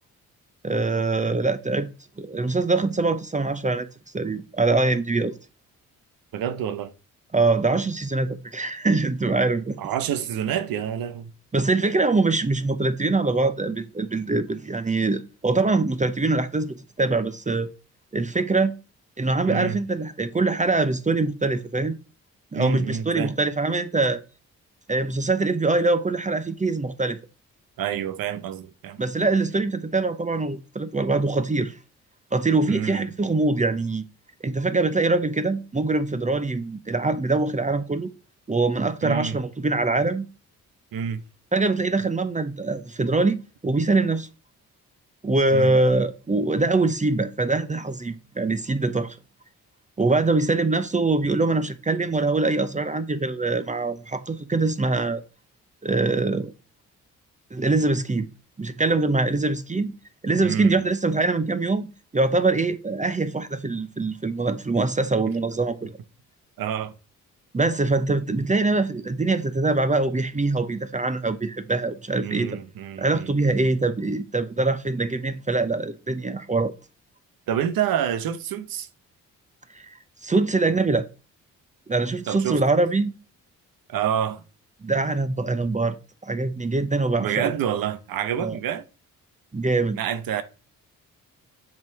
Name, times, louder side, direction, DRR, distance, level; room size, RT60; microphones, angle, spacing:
voice 1, 0.6-1.9 2.2-3.9 4.1-5.4 7.3-9.8 11.5-17.7 18.1-18.7 19.2-21.9 22.5-24.2 24.9-27.2 29.0-31.7 32.3-34.0 34.4-38.1 38.5-40.3 41.5-43.4 43.6-44.3 45.2-49.2 50.0-55.2 55.8-56.5 57.5-58.3 58.6-59.9 60.2-61.9 62.1-66.0 67.5-72.6 73.0-76.7 79.7-80.0 80.2-81.1 81.9-83.1 84.8-86.0 86.2-87.5 88.4-88.6 89.5-90.0, right 3 dB, 20° right, 0.8 m, -23 dB
voice 2, 6.3-6.9 9.8-11.3 19.5-19.8 22.5-23.4 27.8-29.0 32.7-33.1 39.0-39.4 40.9-41.2 45.5-45.8 60.4-60.8 66.6-66.9 72.2-73.6 77.5-78.9 82.3-82.6 83.9-84.4 87.2-88.8 90.0-90.4, right 9 dB, 75° right, 0.9 m, -28 dB
7.2 x 3.8 x 4.7 m
supercardioid pair, 55°, 35 cm